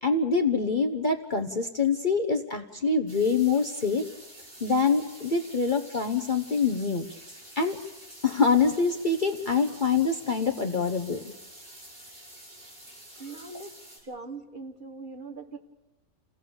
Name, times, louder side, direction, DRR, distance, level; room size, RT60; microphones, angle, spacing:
voice 1, 0.0-4.0 4.6-7.1 7.6-7.8 8.2-11.3, left 4 dB, 35° left, 4 dB, 1.0 m, -25 dB
sound 1, 3.1-14.0, right 1 dB, 80° right, 7.5 m, -48 dB
voice 2, 13.2-13.7 14.0-15.6, right 3 dB, 35° right, 4 dB, 1.6 m, -41 dB
29.5 x 17.0 x 7.2 m, 1.1 s
omnidirectional pair, 1.6 m